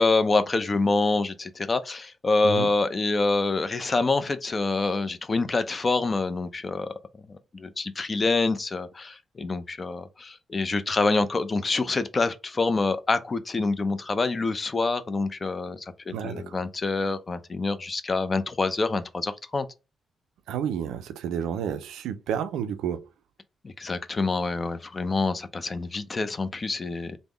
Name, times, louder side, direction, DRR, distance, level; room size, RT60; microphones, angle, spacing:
voice 1, 0.0-6.9 7.3-19.7 23.6-27.2, left 3 dB, 40° left, 0.4 m, -26 dB
voice 2, 16.1-16.6 20.5-23.1, right 8 dB, 80° right, 0.3 m, -30 dB
3.4 x 2.0 x 3.4 m
hypercardioid pair, 45°, 0 cm